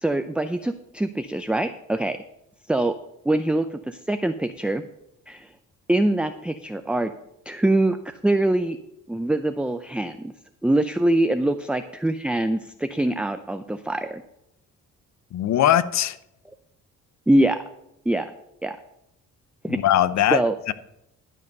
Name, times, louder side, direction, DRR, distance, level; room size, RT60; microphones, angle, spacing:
voice 1, 0.0-2.2 2.7-3.0 3.3-4.8 5.3-5.5 5.9-7.1 7.5-8.8 9.1-10.3 10.6-14.2 17.3-17.6 18.1-18.3 18.6-18.8 19.6-19.8 20.3-20.6, right 1 dB, 5° right, 0.5 m, -23 dB
voice 2, 15.3-16.2 19.7-20.4 20.7-20.8, left 11 dB, 65° left, 0.7 m, -20 dB
12.0 x 5.4 x 6.7 m
cardioid pair, 90°, 30 cm